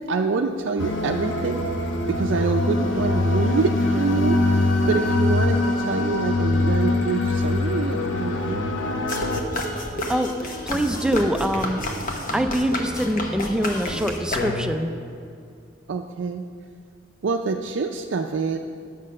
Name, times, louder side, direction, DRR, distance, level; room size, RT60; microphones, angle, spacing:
voice 1, 0.0-1.7 2.1-8.7 15.9-16.4 17.2-18.6, right 4 dB, 75° right, 3 dB, 0.4 m, -26 dB
sound 1, 0.8-9.4, left 2 dB, 80° left, 0.9 m, -23 dB
sound 2, 9.1-14.9, left 1 dB, 45° left, 1.1 m, -30 dB
voice 2, 10.1-11.8 12.3-14.9, equal, 5° right, 6 dB, 0.4 m, -24 dB
9.6 x 7.5 x 5.4 m, 2.4 s
head